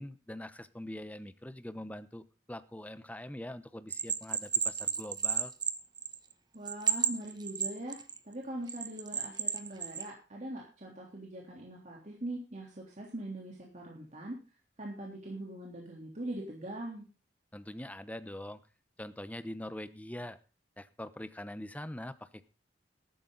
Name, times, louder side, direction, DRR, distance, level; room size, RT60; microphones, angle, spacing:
voice 1, 0.0-5.5 17.5-18.6 19.0-20.4 20.8-22.5, left 1 dB, 10° left, 12 dB, 0.9 m, -43 dB
Bell, 3.9-6.3 6.7-8.2 8.7-10.1, right 6 dB, 25° right, 1.1 m, -32 dB
voice 2, 6.5-14.4 14.8-17.0, right 1 dB, 40° right, -2 dB, 3.5 m, -42 dB
14.0 x 12.0 x 4.0 m, 0.33 s
head